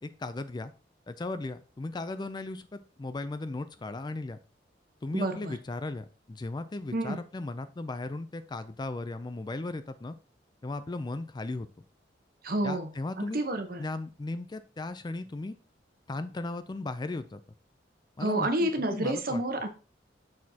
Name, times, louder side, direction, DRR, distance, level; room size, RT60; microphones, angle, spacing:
voice 1, 0.0-0.7 1.1-4.4 5.0-10.1 10.6-11.7 12.6-13.4 13.8-15.5 16.1-17.4 18.2-19.4, left 2 dB, 25° left, 11 dB, 0.4 m, -36 dB
voice 2, 5.1-5.6 6.9-7.2 12.4-12.9 13.2-13.9 18.2-19.7, right 1 dB, 55° right, 7 dB, 1.0 m, -29 dB
6.4 x 6.3 x 2.8 m, 0.35 s
head